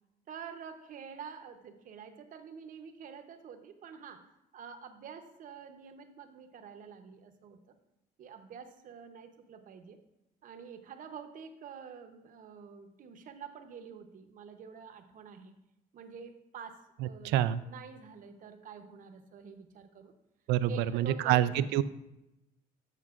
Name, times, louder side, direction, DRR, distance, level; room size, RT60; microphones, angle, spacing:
voice 1, 0.3-7.7 8.2-10.0 10.4-15.6 15.9-20.1 20.7-21.7, right 7 dB, 55° right, 8 dB, 0.8 m, -48 dB
voice 2, 17.0-17.6 20.5-21.8, right 12 dB, 85° right, 15 dB, 0.4 m, -27 dB
13.5 x 5.4 x 2.4 m, 0.90 s
cardioid pair, 110°, 17 cm